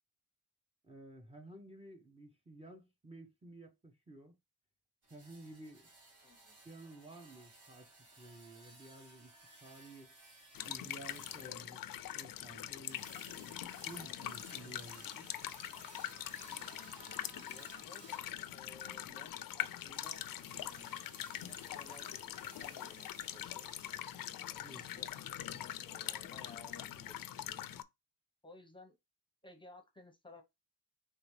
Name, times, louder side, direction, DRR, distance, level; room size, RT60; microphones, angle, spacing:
voice 1, 0.8-4.3 5.1-5.9 6.6-7.9 8.2-9.3 9.6-10.1 10.7-11.8 12.2-13.0 13.8-15.3 24.6-24.9, right 2 dB, 15° right, 0.9 m, -53 dB
sound 1, 5.0-18.4 19.5-24.3, right 2 dB, 55° right, 2.3 m, -58 dB
voice 2, 6.2-6.5 17.4-20.3 20.6-23.7 24.3-25.1 25.5-27.7 28.4-28.9 29.4-30.4, left 2 dB, 15° left, 0.9 m, -58 dB
sound 2, 10.5-27.8, left 12 dB, 65° left, 0.6 m, -43 dB
5.0 x 3.3 x 3.1 m
cardioid pair, 130°, 37 cm